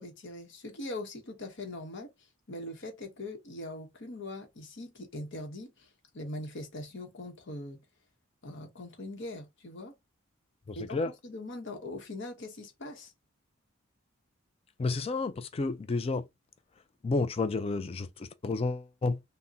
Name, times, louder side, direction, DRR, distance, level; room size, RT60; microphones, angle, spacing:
voice 1, 0.0-2.1 2.5-5.9 6.1-7.8 8.4-9.9 10.8-11.0 11.2-13.1, left 1 dB, 55° left, 0.9 m, -41 dB
voice 2, 10.7-11.1 14.8-16.3 17.0-19.2, left 3 dB, 30° left, 0.3 m, -31 dB
3.6 x 2.1 x 2.6 m
head